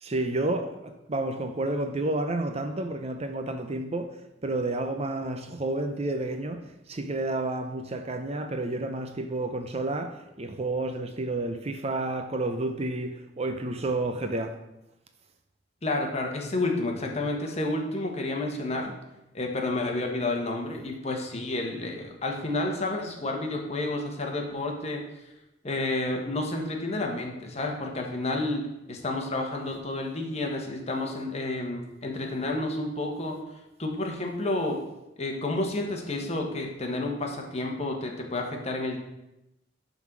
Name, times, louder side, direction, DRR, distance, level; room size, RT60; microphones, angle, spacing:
voice 1, 0.0-4.2 4.4-14.6, right 2 dB, 30° right, 0.6 m, -30 dB
voice 2, 15.8-18.9 19.3-25.0 25.6-28.6 28.9-33.3 33.8-34.8 35.2-39.0, left 2 dB, 35° left, 1.3 m, -30 dB
10.5 x 4.0 x 6.0 m
head